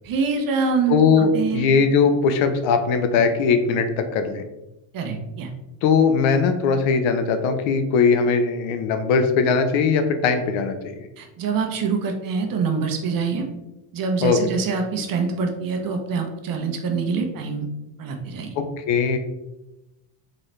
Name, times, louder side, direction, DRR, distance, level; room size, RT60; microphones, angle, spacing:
voice 1, 0.0-1.0 1.3-1.7 4.9-5.5 11.2-13.5 13.9-17.7 18.0-18.5, right 5 dB, 45° right, 3 dB, 0.9 m, -25 dB
voice 2, 0.9-4.4 5.8-11.0 14.2-14.4 18.6-19.2, left 5 dB, 70° left, 8 dB, 0.8 m, -20 dB
3.9 x 3.9 x 3.3 m, 0.96 s
cardioid pair, 120°, 48 cm